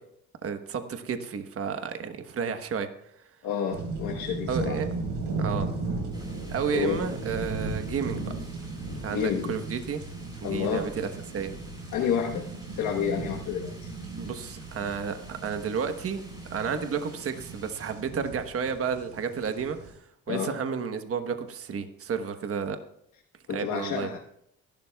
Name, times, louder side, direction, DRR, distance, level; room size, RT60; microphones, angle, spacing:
voice 1, 0.4-2.9 4.5-4.9 5.4-5.7 6.5-8.3 9.0-10.0 10.4-11.5 14.2-16.2 16.5-19.8 20.3-22.8 23.5-24.1, right 6 dB, 50° right, 8 dB, 1.2 m, -31 dB
voice 2, 3.4-4.8 6.7-7.0 9.1-9.6 10.4-10.9 11.9-12.5 12.8-13.9 20.3-20.5 23.5-24.2, left 7 dB, 85° left, 0 dB, 1.3 m, -29 dB
sound 1, 3.7-19.9, right 3 dB, 85° right, 4.6 m, -36 dB
sound 2, 6.1-18.0, equal, 15° right, 5.9 m, -53 dB
23.5 x 12.0 x 2.4 m, 0.73 s
cardioid pair, 90°, 30 cm